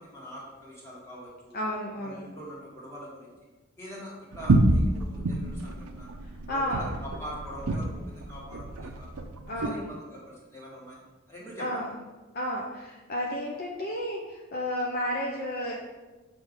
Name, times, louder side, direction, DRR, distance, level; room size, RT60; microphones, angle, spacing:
voice 1, 0.0-1.6 2.0-3.3 3.8-6.1 6.5-9.1 9.6-11.0 11.3-11.8, equal, 15° left, -6 dB, 1.7 m, -43 dB
voice 2, 1.5-2.3 6.5-6.8 9.5-9.9 11.6-11.9 12.3-15.8, left 1 dB, 45° left, -2 dB, 0.6 m, -32 dB
sound 1, 4.3-9.7, right 2 dB, 85° right, 0.5 m, -28 dB
6.4 x 3.4 x 5.2 m, 1.2 s
head